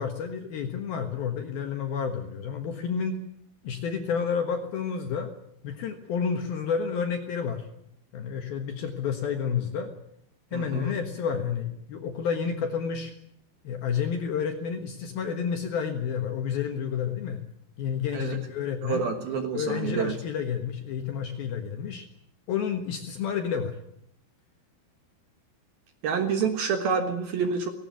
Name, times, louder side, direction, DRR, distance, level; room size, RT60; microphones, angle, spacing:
voice 1, 0.0-3.2 3.6-5.3 5.6-7.7 8.1-9.9 10.5-13.1 13.6-17.4 17.8-19.0 19.5-22.0 22.5-23.8, left 7 dB, 65° left, 5 dB, 2.6 m, -30 dB
voice 2, 10.5-11.0 18.1-18.4 18.8-20.1 26.0-27.7, right 5 dB, 60° right, 6 dB, 2.7 m, -28 dB
18.5 x 18.0 x 9.3 m, 0.75 s
omnidirectional pair, 5.8 m